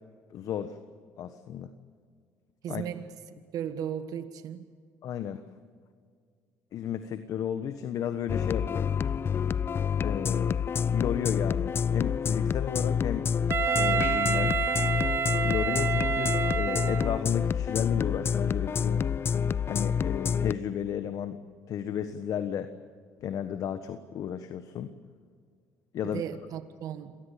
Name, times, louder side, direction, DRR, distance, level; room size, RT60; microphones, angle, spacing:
voice 1, 0.3-0.8 1.2-1.7 2.7-2.8 5.0-5.4 6.7-8.9 10.0-10.6 10.9-13.3 13.8-14.6 15.4-19.0 19.7-21.4 21.7-22.7 23.2-24.9 25.9-26.2, left 9 dB, 60° left, 10 dB, 1.3 m, -33 dB
voice 2, 2.6-3.1 3.5-4.7 26.0-27.1, right 9 dB, 65° right, 10 dB, 1.6 m, -36 dB
sound 1, 8.3-20.5, left 7 dB, 35° left, 0.5 m, -28 dB
Wind instrument woodwind instrument, 13.5-17.3, right 8 dB, 40° right, 0.6 m, -28 dB
27.0 x 18.5 x 7.4 m, 2.1 s
supercardioid pair, 90°, 7 cm